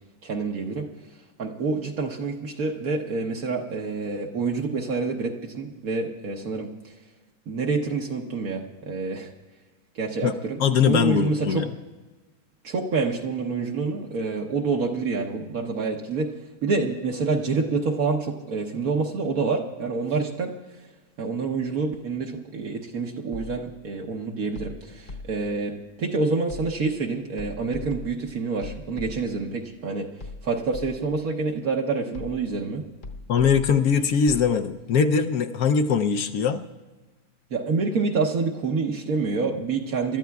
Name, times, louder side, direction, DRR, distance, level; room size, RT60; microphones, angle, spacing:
voice 1, 0.2-0.8 1.4-6.7 7.5-9.3 9.9-11.6 12.6-16.3 16.6-20.5 21.2-25.7 26.0-30.1 30.4-32.8 37.5-40.2, right 4 dB, 70° right, 1 dB, 1.5 m, -27 dB
voice 2, 10.6-11.7 33.3-36.6, left 6 dB, 75° left, 6 dB, 1.2 m, -21 dB
sound 1, 23.3-23.8 24.6-25.6 26.5-27.0 27.4-29.5 30.2-31.3 32.1-32.7 33.0-34.5, left 3 dB, 55° left, 1.4 m, -40 dB
27.5 x 13.0 x 2.3 m, 1.2 s
omnidirectional pair, 1.6 m